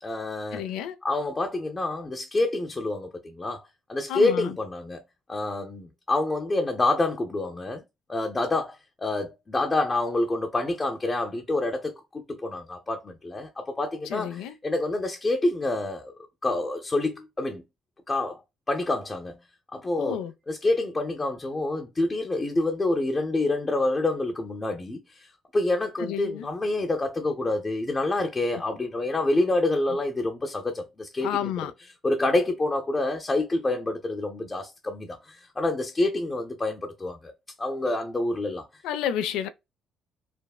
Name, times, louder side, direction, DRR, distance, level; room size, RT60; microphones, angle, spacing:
voice 1, 0.0-0.6 1.0-3.6 3.9-5.0 5.3-7.8 8.1-16.1 16.4-17.6 18.1-18.4 18.7-19.4 19.7-20.2 20.5-31.5 32.0-37.3 37.6-38.6, left 2 dB, 25° left, 0.6 m, -27 dB
voice 2, 0.5-1.0 4.1-4.6 14.0-14.5 20.0-20.3 26.0-26.5 28.5-28.6 31.2-31.7 38.8-39.5, left 10 dB, 90° left, 0.3 m, -30 dB
3.4 x 2.0 x 2.2 m
cardioid pair, 85°, 0 cm